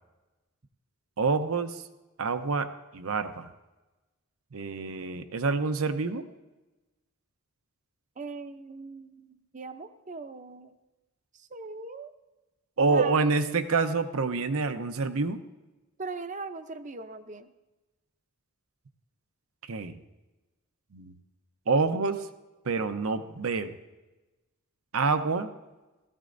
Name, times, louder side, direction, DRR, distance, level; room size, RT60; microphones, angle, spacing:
voice 1, 1.2-1.8 2.2-3.5 4.5-6.2 12.8-15.4 19.7-20.0 20.9-21.1 21.7-22.3 22.6-23.7 24.9-25.5, right 4 dB, 75° right, 9 dB, 0.7 m, -27 dB
voice 2, 8.2-10.7 11.3-12.1 12.9-13.3 16.0-17.5, right 3 dB, 35° right, 10 dB, 0.6 m, -40 dB
17.0 x 14.5 x 2.6 m, 1.1 s
head